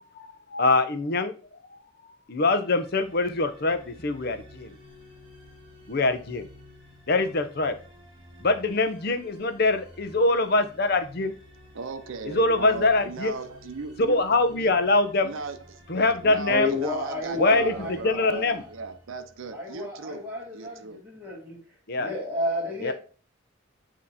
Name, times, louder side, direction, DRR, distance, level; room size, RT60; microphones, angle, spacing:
voice 1, 0.2-1.3 2.3-4.7 5.9-6.5 7.1-7.7 8.4-11.3 12.2-13.3 14.1-15.3 15.9-16.7 17.3-18.6 21.9-22.1 22.8-22.9, left 2 dB, 50° left, 0.7 m, -24 dB
sound 1, 2.6-19.7, left 1 dB, 25° right, 1.6 m, -51 dB
voice 2, 11.7-14.2 14.5-14.7 15.2-20.3 20.5-21.0, right 4 dB, 80° right, 0.6 m, -37 dB
voice 3, 16.5-18.6 19.5-21.6 22.0-22.9, left 1 dB, 10° right, 1.8 m, -31 dB
8.7 x 2.9 x 4.2 m
head